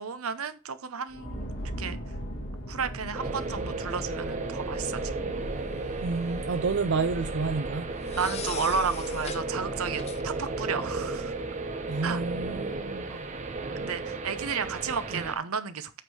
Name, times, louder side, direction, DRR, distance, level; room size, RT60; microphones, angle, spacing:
voice 1, 0.0-1.5 1.8-2.0 2.7-5.1 8.1-11.3 12.0-12.2 13.1-13.3 13.8-15.9, right 6 dB, 80° right, 0.8 m, -32 dB
sound 1, 1.1-10.7, equal, 65° left, 3.4 m, -40 dB
sound 2, 3.1-15.3, right 3 dB, 35° right, 0.9 m, -34 dB
sound 3, 5.8-6.5 8.0-9.5 10.0-10.2, left 8 dB, 30° left, 0.4 m, -41 dB
voice 2, 6.0-7.9 11.9-13.1 15.1-15.2, right 4 dB, 55° right, 0.5 m, -29 dB
8.3 x 3.7 x 6.2 m
head